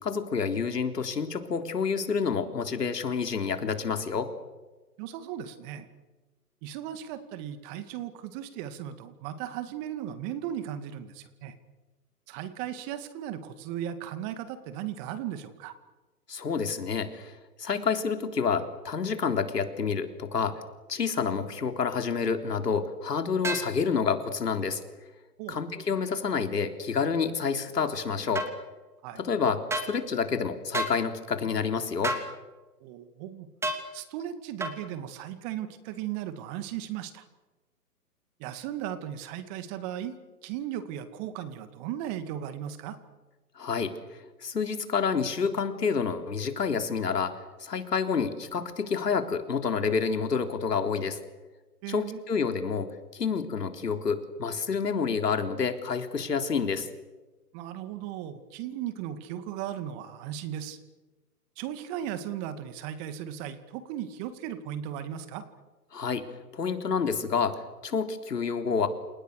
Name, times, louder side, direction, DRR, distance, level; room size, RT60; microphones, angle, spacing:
voice 1, 0.0-4.3 16.3-20.6 20.9-24.8 25.5-28.5 29.2-29.6 29.9-32.2 43.6-43.9 44.4-47.3 47.6-51.2 51.9-56.9 65.9-66.2 66.5-68.9, left 5 dB, 75° left, 7 dB, 3.9 m, -28 dB
voice 2, 5.0-5.9 6.6-11.5 12.3-15.7 25.4-25.6 29.0-29.2 32.8-33.5 33.9-37.3 38.4-43.0 51.8-52.2 57.5-60.8 61.6-65.4, right 10 dB, 25° right, 11 dB, 2.3 m, -36 dB
sound 1, 23.4-23.7 28.3-28.5 29.7-29.9 30.7-31.0 32.0-32.3 33.6-33.8 34.6-34.8, right 1 dB, 5° right, 3.0 m, -30 dB
29.0 x 29.0 x 6.7 m, 1.2 s
hypercardioid pair, 135°, 48 cm